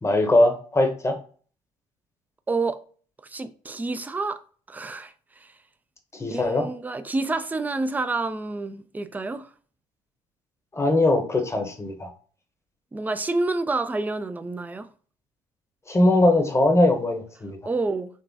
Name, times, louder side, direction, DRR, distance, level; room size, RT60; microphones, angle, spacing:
voice 1, 0.0-1.2 6.1-6.7 10.7-12.1 15.9-17.6, left 1 dB, 15° left, 0.8 m, -21 dB
voice 2, 2.5-2.8 3.2-4.4 4.7-5.1 5.4-5.5 6.3-9.5 12.9-14.9 17.7-18.1, right 3 dB, 10° right, 0.3 m, -28 dB
2.9 x 2.6 x 2.2 m
hypercardioid pair, 50°, 18 cm